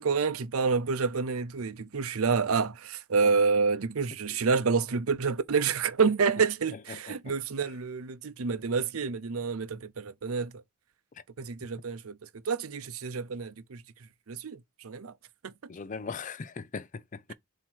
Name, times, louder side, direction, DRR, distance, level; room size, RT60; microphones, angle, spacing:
voice 1, 0.0-10.6 11.4-13.8 14.3-15.1 15.4-15.5, right 5 dB, 80° right, 0.6 m, -28 dB
voice 2, 6.9-7.3 15.7-17.2, left 5 dB, 35° left, 0.4 m, -39 dB
7.3 x 2.9 x 4.5 m
head